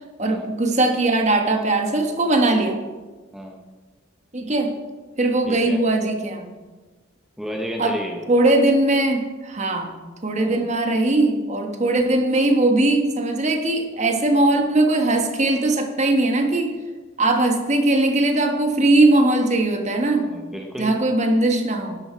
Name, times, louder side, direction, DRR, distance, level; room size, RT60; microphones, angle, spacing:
voice 1, 0.2-2.8 4.3-4.7 5.2-6.5 7.8-8.0 8.3-16.7 17.2-20.2 20.8-22.0, right 2 dB, 35° right, 4 dB, 1.4 m, -20 dB
voice 2, 5.5-5.8 7.4-8.3 10.4-10.7 20.3-21.0, equal, ahead, 0 dB, 0.9 m, -32 dB
12.0 x 11.0 x 4.5 m, 1.3 s
head